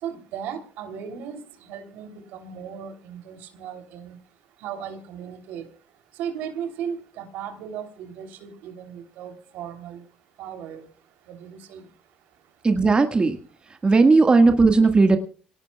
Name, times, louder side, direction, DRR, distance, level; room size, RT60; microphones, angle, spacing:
voice 1, 0.0-4.2 4.6-5.6 6.2-10.0 10.4-10.8 11.3-11.8, right 8 dB, 80° right, 6 dB, 3.2 m, -36 dB
voice 2, 12.6-13.4 13.7-15.2, right 3 dB, 30° right, 6 dB, 1.7 m, -17 dB
26.5 x 18.0 x 2.3 m, 0.40 s
supercardioid pair, 70°, 3 cm